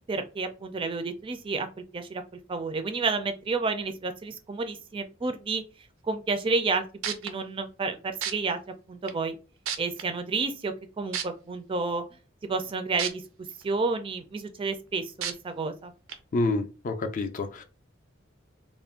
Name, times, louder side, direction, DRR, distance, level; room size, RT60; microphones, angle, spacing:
voice 1, 0.0-1.7 1.9-2.2 2.5-5.6 6.0-8.6 8.9-9.4 9.8-12.0 12.4-13.2 13.6-15.9, right 4 dB, 25° right, 0.3 m, -30 dB
sound 1, 7.0-7.3 8.2-8.3 9.1-9.2 9.6-10.0 11.1-11.2 13.0-13.1 13.6-13.7 15.2-15.3 16.1-16.2, right 8 dB, 90° right, 0.5 m, -30 dB
voice 2, 16.3-17.6, left 2 dB, 40° left, 0.4 m, -28 dB
2.4 x 2.1 x 3.5 m
head